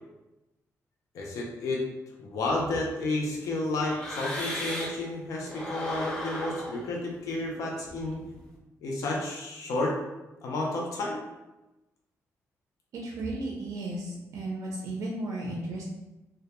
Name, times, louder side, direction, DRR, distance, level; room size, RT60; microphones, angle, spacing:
voice 1, 1.1-1.8 2.2-8.2 8.8-10.0 10.4-11.2, left 2 dB, 75° left, -1 dB, 0.5 m, -31 dB
sound 1, 2.5-5.1 5.4-8.5, left 1 dB, 15° left, 0.4 m, -38 dB
voice 2, 12.9-15.8, right 2 dB, 65° right, -2 dB, 0.4 m, -34 dB
2.2 x 2.1 x 2.8 m, 1.0 s
cardioid pair, 160°, 6 cm